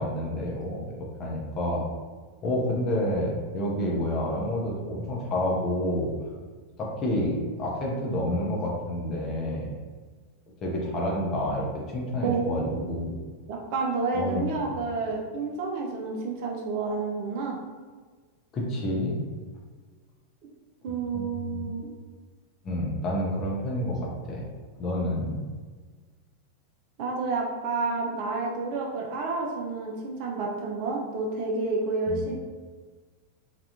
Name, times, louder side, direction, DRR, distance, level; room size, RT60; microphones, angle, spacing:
voice 1, 0.0-1.8 2.4-6.1 6.8-9.7 10.6-13.1 14.1-14.7 18.5-19.2 21.1-21.6 22.6-24.5 24.8-25.4 32.1-32.2, left 1 dB, 30° left, -3 dB, 0.6 m, -29 dB
voice 2, 12.2-13.2 13.5-17.6 20.8-21.9 27.0-32.4, right 3 dB, 45° right, -1 dB, 0.5 m, -30 dB
3.3 x 2.3 x 2.8 m, 1.4 s
figure-of-eight pair, 90°, 0 cm